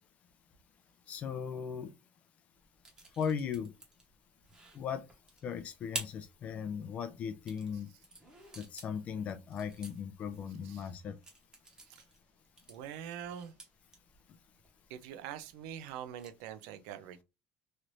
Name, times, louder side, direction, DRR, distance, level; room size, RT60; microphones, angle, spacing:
voice 1, 1.1-1.9 3.2-3.7 4.7-5.0 5.4-7.9 8.6-11.2, left 7 dB, 35° left, 0.5 m, -37 dB
sound 1, 2.5-16.5, right 3 dB, 15° right, 0.9 m, -51 dB
voice 2, 12.7-13.5 14.9-17.2, right 9 dB, 85° right, 0.5 m, -44 dB
3.2 x 2.6 x 3.0 m
cardioid pair, 160°, 4 cm